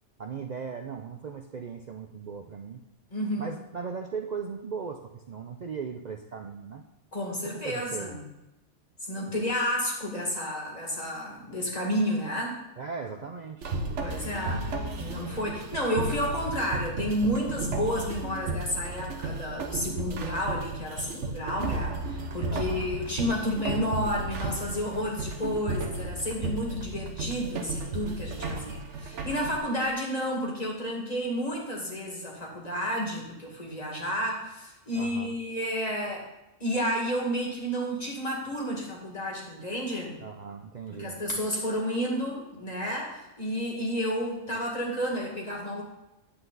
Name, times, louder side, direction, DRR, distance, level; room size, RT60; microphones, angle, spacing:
voice 1, 0.2-2.8 3.4-6.8 7.4-8.2 12.8-13.8 14.4-14.8 22.5-22.9 28.4-28.8 35.0-35.4 40.2-41.2, right 5 dB, 50° right, 5 dB, 0.5 m, -38 dB
voice 2, 3.1-3.5 7.1-8.3 9.0-12.6 14.0-14.6 15.0-36.3 36.6-40.2 40.9-45.8, equal, 35° left, -1 dB, 2.1 m, -31 dB
sound 1, 13.6-29.6, right 2 dB, 75° right, 1.2 m, -34 dB
9.9 x 8.0 x 3.9 m, 0.95 s
omnidirectional pair, 1.3 m